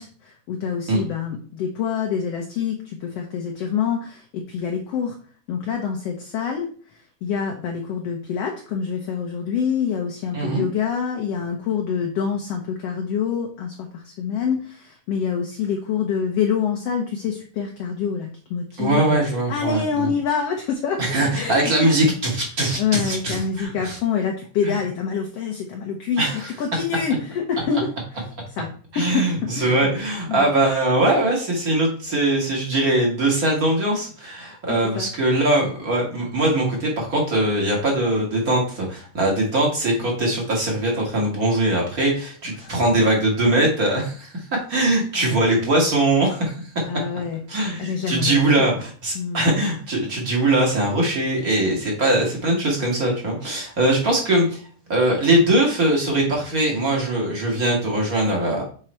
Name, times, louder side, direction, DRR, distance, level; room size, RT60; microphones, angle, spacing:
voice 1, 0.0-5.2 5.5-6.7 7.2-19.2 19.5-21.0 21.3-22.1 22.7-26.2 26.6-27.9 28.6-28.7 28.9-29.9 30.3-30.5 34.7-35.1 42.6-42.7 45.2-45.4 46.9-48.7 49.1-49.4, left 7 dB, 70° left, 1 dB, 1.6 m, -26 dB
voice 2, 10.3-10.7 18.8-20.1 21.0-24.0 24.6-24.8 26.2-26.5 28.9-46.8 47.5-54.6 54.9-58.6, right 1 dB, 35° right, -1 dB, 1.9 m, -21 dB
7.4 x 3.9 x 4.4 m, 0.44 s
omnidirectional pair, 3.6 m